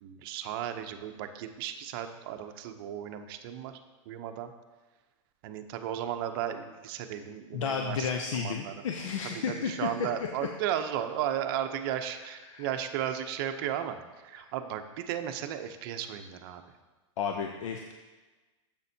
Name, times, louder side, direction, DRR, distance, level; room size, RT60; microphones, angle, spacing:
voice 1, 0.0-3.7 4.1-4.5 5.4-8.7 9.3-16.6, right 10 dB, 45° right, 8 dB, 0.6 m, -35 dB
voice 2, 7.5-9.9 12.4-12.7 14.4-14.5 17.2-17.9, left 6 dB, 70° left, 3 dB, 0.7 m, -32 dB
9.7 x 7.2 x 2.7 m, 1.2 s
supercardioid pair, 150°, 16 cm